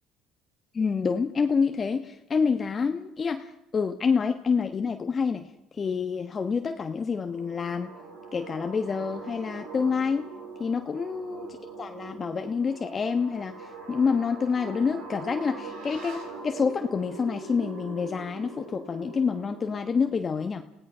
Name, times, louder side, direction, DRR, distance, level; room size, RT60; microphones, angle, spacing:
voice 1, 0.7-5.4 5.8-7.9 8.3-10.3 10.6-11.5 11.8-13.5 13.9-20.6, left 5 dB, 35° left, 6 dB, 1.2 m, -27 dB
sound 1, 7.0-20.1, right 4 dB, 85° right, 5.3 m, -42 dB
29.5 x 16.5 x 5.6 m, 0.87 s
supercardioid pair, 75°, 0 cm